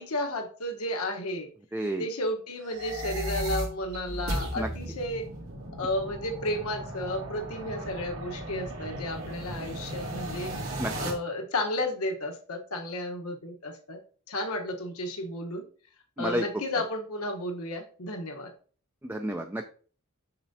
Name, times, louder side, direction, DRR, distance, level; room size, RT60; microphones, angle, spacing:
voice 1, 0.0-1.5 2.0-5.3 5.8-10.5 11.0-14.0 14.3-15.6 16.2-18.5, left 1 dB, 85° left, 3 dB, 1.1 m, -33 dB
voice 2, 1.7-2.0 4.6-4.7 10.8-10.9 16.2-16.4 19.1-19.6, right 1 dB, 10° right, 5 dB, 0.4 m, -30 dB
sound 1, 2.6-11.1, right 1 dB, 70° right, 2.3 m, -36 dB
7.1 x 6.0 x 2.7 m, 0.41 s
head